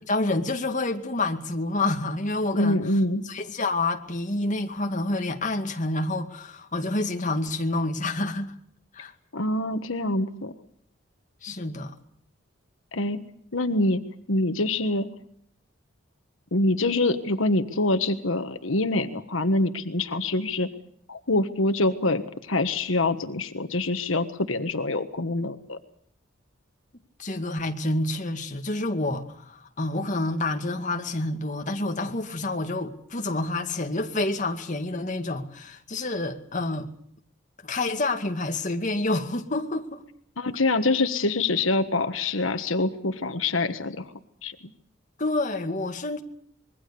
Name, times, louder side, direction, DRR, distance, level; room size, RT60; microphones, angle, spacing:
voice 1, 0.1-2.8 3.2-8.5 8.9-9.1 11.4-12.0 27.2-36.9 37.6-40.0 45.2-46.2, left 2 dB, 40° left, 2.2 m, -28 dB
voice 2, 2.5-3.2 9.3-10.5 12.9-13.2 13.5-14.0 14.3-15.1 16.5-20.7 21.1-25.8 40.4-44.1 44.4-44.5, left 2 dB, 85° left, 1.5 m, -25 dB
26.0 x 22.0 x 7.0 m
head